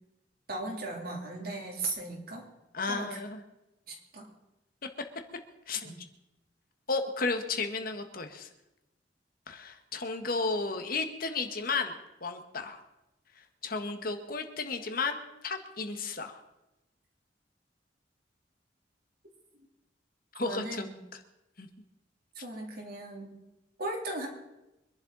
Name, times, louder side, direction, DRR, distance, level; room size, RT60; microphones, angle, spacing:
voice 1, 0.5-2.4 2.8-3.2 3.9-4.3 5.8-6.0 20.4-21.0 22.4-23.4 23.8-24.3, right 2 dB, 55° right, 0 dB, 3.6 m, -37 dB
voice 2, 2.7-3.4 5.7-5.9 6.9-8.5 9.5-11.9 12.2-12.8 13.6-16.4 20.3-21.2 21.6-21.7, left 3 dB, 55° left, 6 dB, 1.6 m, -33 dB
24.5 x 11.5 x 4.2 m, 0.94 s
head